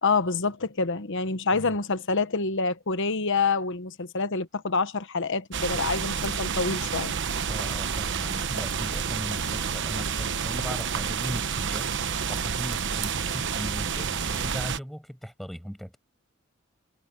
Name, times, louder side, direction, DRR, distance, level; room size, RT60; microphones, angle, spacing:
voice 1, 0.0-7.1, left 4 dB, 60° left, 1.2 m, -27 dB
sound 1, 5.5-14.8, right 6 dB, 60° right, 1.1 m, -29 dB
voice 2, 7.5-11.9 12.3-16.0, equal, ahead, 6.4 m, -38 dB
head